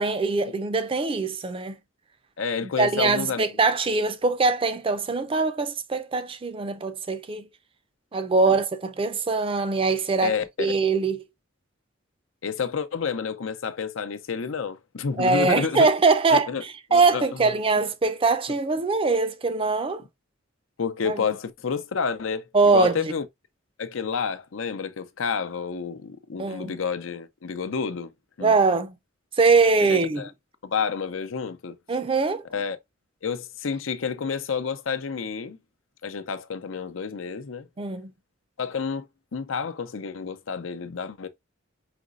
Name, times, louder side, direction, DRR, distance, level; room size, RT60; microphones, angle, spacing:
voice 1, 0.0-1.7 2.8-7.5 8.1-11.2 15.2-20.0 21.0-21.2 22.5-23.1 26.4-26.7 28.4-29.0 29.4-30.2 31.9-32.4 37.8-38.1, right 4 dB, 25° right, 0.4 m, -22 dB
voice 2, 2.4-3.4 8.5-8.6 10.2-10.8 12.4-15.9 16.3-16.6 16.9-17.2 20.8-23.2 23.8-28.1 28.4-28.5 29.8-30.3 30.6-31.8 32.5-32.8 33.2-35.6 36.0-37.7 38.6-41.3, left 6 dB, 90° left, 0.6 m, -29 dB
5.1 x 3.0 x 2.4 m
head